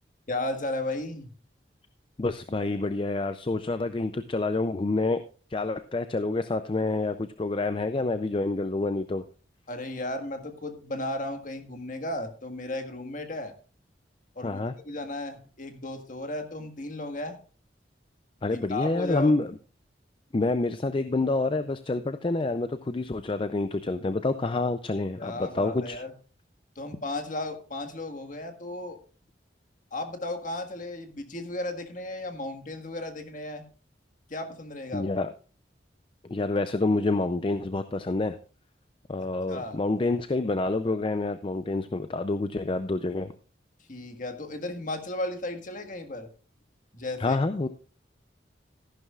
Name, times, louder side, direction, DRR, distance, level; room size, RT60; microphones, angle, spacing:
voice 1, 0.3-1.3 9.7-13.5 14.3-17.4 18.5-19.3 25.1-26.1 26.7-29.0 29.9-33.6 34.3-35.1 39.5-39.8 43.9-46.3 46.9-47.4, left 2 dB, 45° left, 6 dB, 1.6 m, -35 dB
voice 2, 2.2-5.2 5.5-9.3 14.4-14.7 18.4-19.5 20.3-26.0 34.9-35.3 36.3-38.4 39.1-43.3 47.2-47.7, left 2 dB, 30° left, 11 dB, 0.4 m, -27 dB
14.0 x 11.0 x 2.4 m, 0.37 s
head